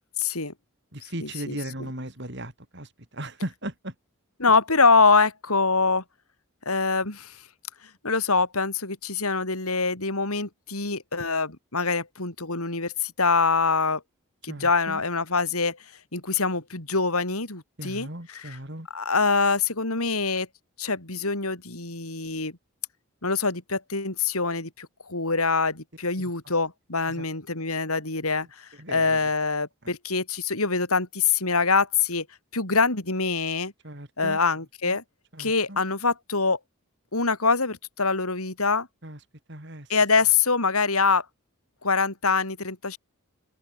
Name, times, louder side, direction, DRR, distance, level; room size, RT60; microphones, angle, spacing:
voice 1, 0.2-0.5 1.2-1.6 4.4-6.0 6.6-7.4 8.0-14.0 14.4-15.8 16.1-18.6 18.9-20.5 20.8-22.5 23.2-32.3 32.5-33.7 34.2-35.0 35.4-36.6 37.1-38.9 39.9-41.2 41.8-43.0, left 4 dB, 80° left, 4.7 m, -24 dB
voice 2, 0.9-3.9 14.5-15.0 17.8-18.9 27.1-27.2 28.8-29.3 29.8-29.9 33.8-34.4 34.8-35.0 35.3-35.8 39.0-39.2 39.5-39.9, right 1 dB, 50° right, 5.7 m, -37 dB
open air
head